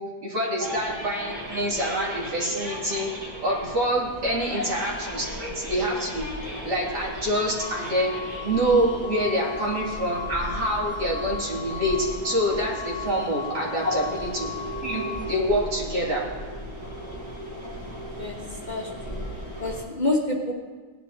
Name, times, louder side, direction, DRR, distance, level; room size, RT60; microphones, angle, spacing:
voice 1, 0.0-3.1 3.4-6.3 6.6-8.1 8.4-14.5 14.8-15.0 15.3-16.2, right 1 dB, 90° right, -5 dB, 3.2 m, -26 dB
sound 1, 0.6-19.8, equal, 10° right, 2.7 m, -37 dB
sound 2, 7.6-15.4, left 7 dB, 75° left, 1.5 m, -37 dB
voice 2, 17.8-18.4 18.7-19.2 19.6-20.5, left 2 dB, 30° left, -1 dB, 1.1 m, -28 dB
17.5 x 11.0 x 2.8 m, 1.4 s
omnidirectional pair, 1.7 m